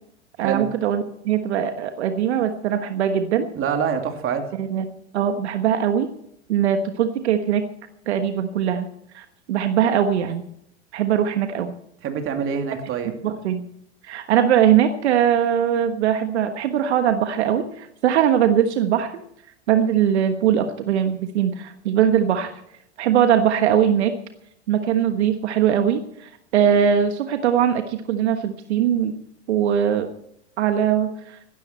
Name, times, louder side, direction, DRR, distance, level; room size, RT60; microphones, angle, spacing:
voice 1, 0.4-3.5 4.5-4.9 5.1-6.1 6.5-7.7 8.1-8.9 9.1-10.4 10.9-11.7 13.2-13.7 14.0-19.1 19.7-22.5 23.0-24.2 24.7-29.2 29.5-30.1 30.6-31.4, right 9 dB, 75° right, 7 dB, 1.4 m, -21 dB
voice 2, 3.5-4.5 12.0-13.1, right 7 dB, 40° right, 5 dB, 2.8 m, -25 dB
16.5 x 13.0 x 4.4 m, 0.74 s
hypercardioid pair, 100°, 34 cm